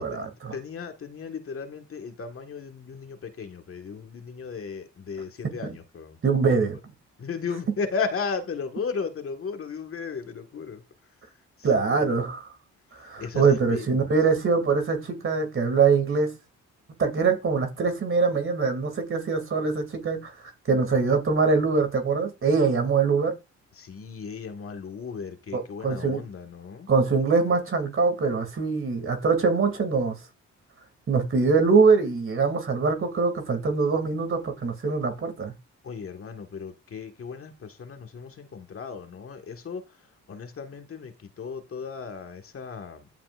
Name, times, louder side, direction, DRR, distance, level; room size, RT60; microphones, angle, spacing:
voice 1, 0.0-0.5 5.6-5.7 6.2-6.8 11.6-12.5 13.0-16.3 17.0-20.3 20.7-23.3 25.5-26.2 26.9-30.2 31.1-35.5, right 4 dB, 45° right, 2.6 m, -23 dB
voice 2, 0.5-6.2 7.2-10.8 11.6-12.1 13.2-14.1 23.8-26.9 35.8-39.8 40.3-43.1, left 5 dB, 45° left, 1.7 m, -35 dB
13.5 x 5.8 x 2.5 m
cardioid pair, 90°, 30 cm